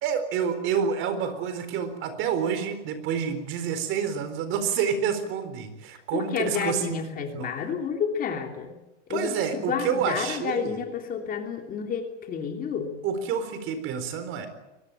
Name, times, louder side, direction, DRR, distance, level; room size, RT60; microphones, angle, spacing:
voice 1, 0.0-7.5 9.1-10.8 13.0-14.5, right 7 dB, 35° right, 10 dB, 4.2 m, -28 dB
voice 2, 6.1-8.8 9.1-12.9, left 6 dB, 25° left, 4 dB, 3.1 m, -30 dB
23.5 x 19.5 x 9.1 m, 0.98 s
supercardioid pair, 145°, 35 cm